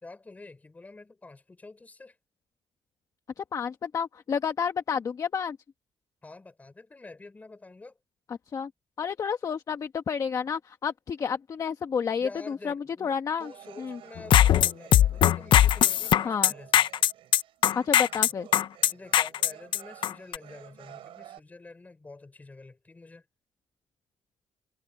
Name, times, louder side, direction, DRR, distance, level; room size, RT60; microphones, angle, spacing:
voice 1, 0.0-2.2 6.2-8.0 12.2-16.9 18.1-18.3 18.9-23.3, left 3 dB, 15° left, 4.5 m, -48 dB
voice 2, 3.4-5.6 8.5-8.7 9.0-13.5 13.8-14.0 16.2-16.5 17.7-18.5, left 6 dB, 40° left, 1.2 m, -30 dB
sound 1, 13.4-21.4, right 12 dB, 80° right, 5.6 m, -51 dB
sound 2, 14.2-20.4, left 11 dB, 65° left, 0.7 m, -20 dB
cardioid pair, 150°, 9 cm